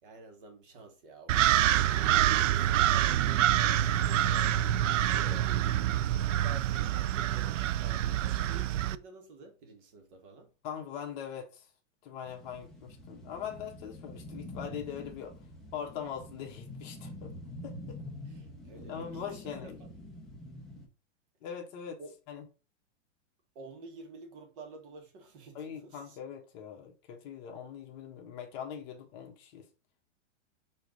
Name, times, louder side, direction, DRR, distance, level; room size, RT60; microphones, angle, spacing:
voice 1, 0.0-4.7 5.1-5.6 6.3-10.5 18.3-19.9 22.0-22.1 23.5-26.2, right 3 dB, 45° right, 1.7 m, -50 dB
sound 1, 1.3-9.0, right 12 dB, 85° right, 0.5 m, -26 dB
voice 2, 10.6-11.7 12.0-15.3 15.7-17.3 17.6-18.0 18.7-19.8 21.4-22.0 22.3-22.4 25.5-29.7, left 8 dB, 35° left, 1.4 m, -41 dB
sound 2, 12.3-20.9, left 1 dB, ahead, 0.4 m, -46 dB
6.3 x 3.2 x 5.0 m
supercardioid pair, 160°, 37 cm